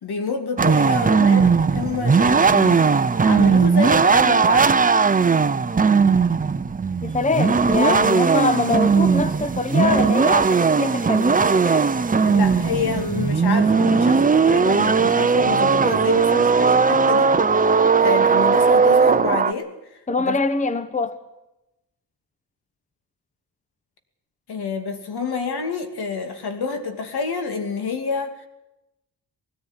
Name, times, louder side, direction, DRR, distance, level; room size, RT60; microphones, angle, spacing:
voice 1, 0.0-2.9 3.2-4.8 12.2-20.4 24.5-28.5, left 5 dB, 70° left, 2.6 m, -28 dB
sound 1, 0.6-19.5, right 5 dB, 20° right, 0.7 m, -18 dB
voice 2, 7.0-11.8 20.1-21.2, left 3 dB, 20° left, 1.0 m, -24 dB
19.0 x 14.5 x 9.7 m
cardioid pair, 95°, 40 cm